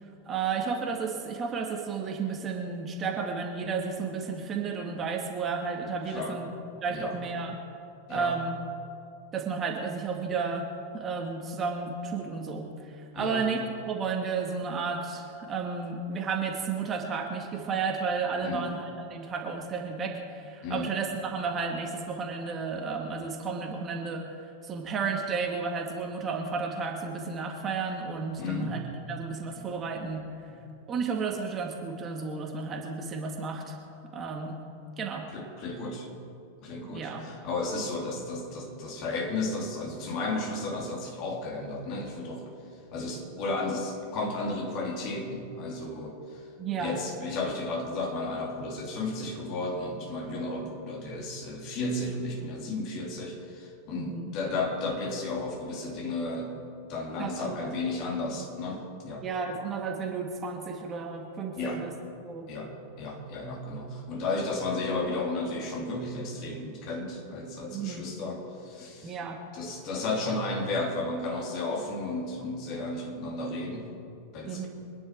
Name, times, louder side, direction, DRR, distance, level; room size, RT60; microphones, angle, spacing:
voice 1, 0.3-7.6 8.1-8.6 9.3-10.7 10.9-13.6 13.9-24.3 24.6-28.8 29.1-30.3 30.9-33.8 34.1-34.6 35.0-35.3 36.9-37.3 46.6-47.0 53.9-54.3 57.2-57.7 59.2-61.9 62.2-62.5 67.7-68.1 69.0-69.4 74.4-74.7, right 5 dB, 25° right, 1 dB, 2.0 m, -32 dB
voice 2, 18.4-18.7 20.6-20.9 28.4-28.8 29.6-29.7 30.5-30.6 35.3-36.1 36.6-42.4 42.9-46.4 46.7-56.6 56.9-59.2 61.5-61.8 62.5-62.7 63.0-69.2 69.5-73.9 74.3-74.7, left 2 dB, 40° left, 0 dB, 3.0 m, -33 dB
24.5 x 10.5 x 4.7 m, 2.6 s
figure-of-eight pair, 90°, 0 cm